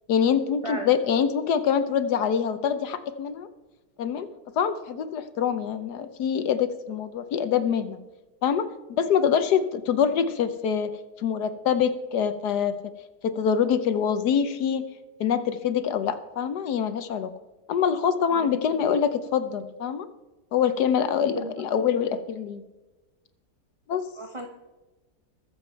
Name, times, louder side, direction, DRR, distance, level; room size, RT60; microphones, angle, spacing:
voice 1, 0.1-3.5 4.0-4.3 4.6-8.0 8.4-8.7 9.0-10.9 11.2-12.7 13.2-14.9 15.2-17.3 17.7-20.1 20.5-22.6 23.9-24.1, left 7 dB, 70° left, 11 dB, 1.3 m, -25 dB
voice 2, 24.1-24.5, right 2 dB, 25° right, 3 dB, 0.7 m, -34 dB
21.5 x 7.2 x 4.5 m, 1.1 s
omnidirectional pair, 1.9 m